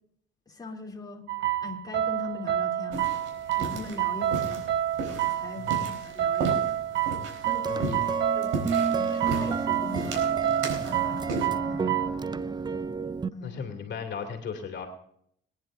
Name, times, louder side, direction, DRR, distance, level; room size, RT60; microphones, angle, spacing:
voice 1, 0.5-1.2 1.6-3.2 3.5-4.7 5.0-6.7 7.4-8.0 8.3-8.5 8.9-11.9 13.3-13.8, left 3 dB, 20° left, -1 dB, 3.0 m, -41 dB
sound 1, 1.3-12.1, right 11 dB, 65° right, 0.9 m, -29 dB
sound 2, 2.9-11.5, right 3 dB, 85° right, 4.2 m, -36 dB
sound 3, 7.5-13.3, right 4 dB, 20° right, 0.5 m, -31 dB
voice 2, 7.7-8.0 13.4-14.9, left 6 dB, 65° left, 4 dB, 2.6 m, -36 dB
23.0 x 10.5 x 2.6 m, 0.68 s
cardioid pair, 90°, 20 cm